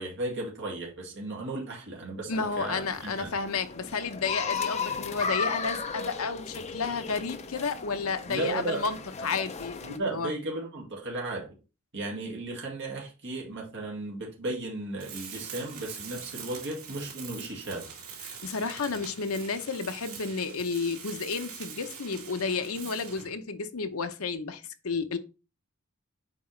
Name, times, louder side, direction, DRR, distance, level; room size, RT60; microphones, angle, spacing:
voice 1, 0.0-3.3 8.3-8.8 9.8-11.5 11.9-17.9, right 2 dB, 55° right, 2.0 m, -35 dB
voice 2, 2.3-10.3 18.2-25.2, left 4 dB, 70° left, 0.8 m, -32 dB
sound 1, 2.3-10.0, left 5 dB, 30° left, 0.7 m, -36 dB
Tools, 15.0-23.4, right 7 dB, 80° right, 3.1 m, -44 dB
7.6 x 4.8 x 3.2 m
head